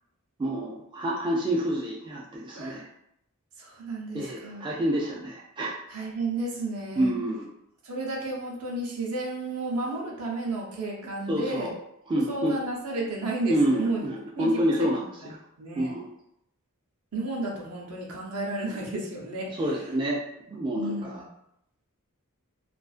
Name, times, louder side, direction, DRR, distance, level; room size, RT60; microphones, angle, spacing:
voice 1, 0.4-2.8 4.1-5.7 7.0-7.4 11.3-11.7 12.1-12.5 13.5-15.0 15.8-16.1 19.6-20.2 20.5-21.2, right 1 dB, 20° right, -4 dB, 0.3 m, -27 dB
voice 2, 2.5-2.8 3.6-4.7 5.9-7.1 7.8-11.7 12.1-14.0 14.4-15.3 15.6-15.9 17.1-19.5 20.7-21.2, right 2 dB, 70° right, -3 dB, 0.7 m, -32 dB
2.5 x 2.4 x 2.4 m, 0.77 s
head